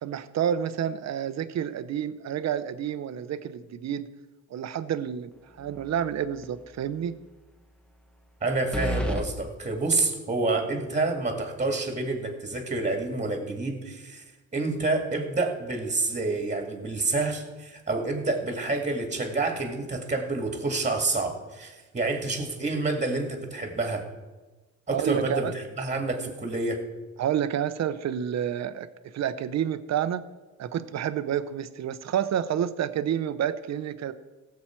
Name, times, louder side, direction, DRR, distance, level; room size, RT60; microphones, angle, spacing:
voice 1, 0.0-4.1 4.5-7.2 24.9-25.5 27.2-30.2 30.6-34.1, right 9 dB, 60° right, 13 dB, 0.8 m, -29 dB
sound 1, 5.6-6.1 6.4-6.5 8.7-9.3, equal, 5° left, 1.2 m, -30 dB
voice 2, 8.4-14.2 14.5-24.1 24.9-26.8, right 3 dB, 25° right, 4 dB, 2.1 m, -28 dB
16.5 x 7.4 x 4.5 m, 1.2 s
cardioid pair, 90°, 30 cm